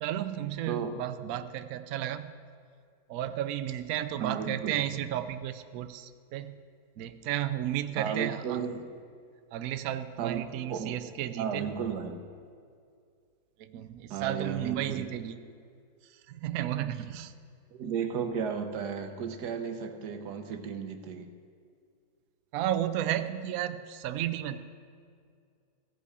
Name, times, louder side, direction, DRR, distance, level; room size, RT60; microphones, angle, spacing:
voice 1, 0.0-2.3 3.1-6.6 7.0-8.6 9.5-11.7 13.6-15.4 16.1-17.3 22.5-24.6, right 12 dB, 90° right, 11 dB, 0.7 m, -33 dB
voice 2, 0.7-1.0 4.2-4.8 8.0-8.9 10.2-10.9 11.4-12.2 14.1-15.1 17.7-21.3, right 6 dB, 60° right, 6 dB, 1.3 m, -34 dB
16.0 x 8.3 x 4.8 m, 2.2 s
omnidirectional pair, 2.1 m